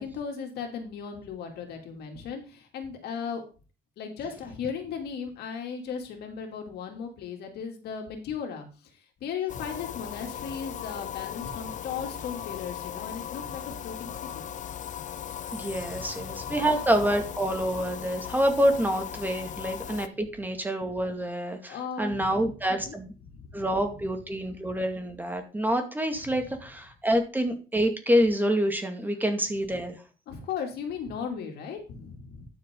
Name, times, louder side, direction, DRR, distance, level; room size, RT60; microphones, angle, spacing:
voice 1, 0.0-3.4 4.0-14.5 15.6-16.6 21.7-22.4 22.7-23.0 23.3-23.6 30.3-32.5, left 6 dB, 70° left, 3 dB, 2.9 m, -37 dB
sound 1, 9.5-20.1, left 9 dB, 45° left, 0.7 m, -38 dB
voice 2, 15.5-23.1 23.5-30.0, equal, 10° right, 5 dB, 2.1 m, -27 dB
11.5 x 7.3 x 3.8 m, 0.34 s
cardioid pair, 110°, 17 cm